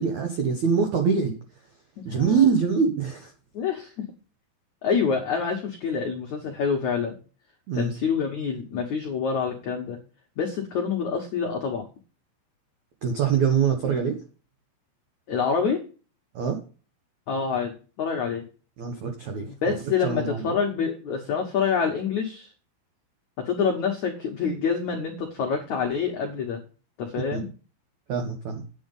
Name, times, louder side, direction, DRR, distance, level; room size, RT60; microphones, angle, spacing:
voice 1, 0.0-1.4 2.0-3.3 7.7-7.9 13.0-14.2 16.3-16.6 18.8-19.5 20.0-20.5 27.3-27.4 28.1-28.6, right 6 dB, 85° right, 5 dB, 1.6 m, -24 dB
voice 2, 2.0-2.5 3.5-3.9 4.8-7.2 7.7-10.0 10.4-11.8 15.3-15.8 17.3-18.5 19.4-22.5 23.4-26.6 27.0-27.5, left 6 dB, 90° left, 2 dB, 1.6 m, -27 dB
9.5 x 8.5 x 5.3 m, 0.36 s
omnidirectional pair, 5.7 m